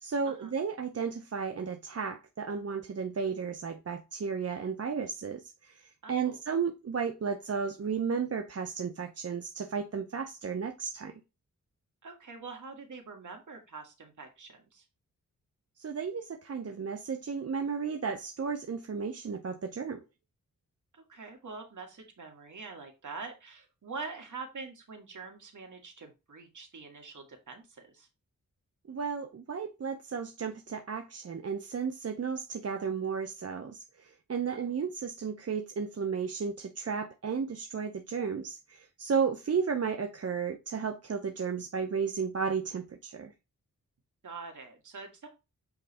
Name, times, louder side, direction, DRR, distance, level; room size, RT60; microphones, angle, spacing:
voice 1, 0.0-11.1 15.8-20.0 28.9-43.3, right 6 dB, 50° right, 0.7 m, -33 dB
voice 2, 6.0-6.4 12.0-14.8 20.9-28.1 34.5-34.6 44.2-45.3, right 4 dB, 65° right, 1.8 m, -45 dB
8.0 x 3.2 x 4.2 m
wide cardioid pair, 85°, 33 cm